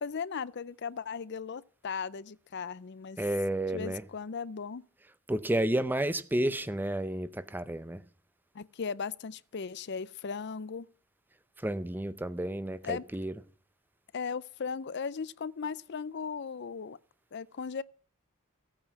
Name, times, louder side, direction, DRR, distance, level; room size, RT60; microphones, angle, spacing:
voice 1, 0.0-3.2 3.7-4.9 8.5-10.9 12.8-13.0 14.1-17.0 17.3-17.8, left 5 dB, 50° left, 0.5 m, -37 dB
voice 2, 3.2-4.0 5.3-8.0 11.6-13.3, right 1 dB, 10° right, 0.6 m, -31 dB
15.5 x 8.9 x 5.9 m
head